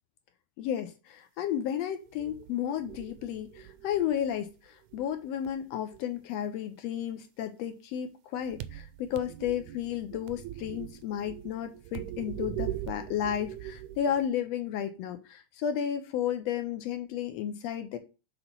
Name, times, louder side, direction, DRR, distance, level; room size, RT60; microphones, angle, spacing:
voice 1, 0.6-18.0, left 9 dB, 80° left, 1.5 m, -33 dB
sound 1, 2.1-4.6 4.9-6.0 8.4-14.3, right 13 dB, 80° right, 1.8 m, -41 dB
5.8 x 4.2 x 5.2 m
omnidirectional pair, 3.4 m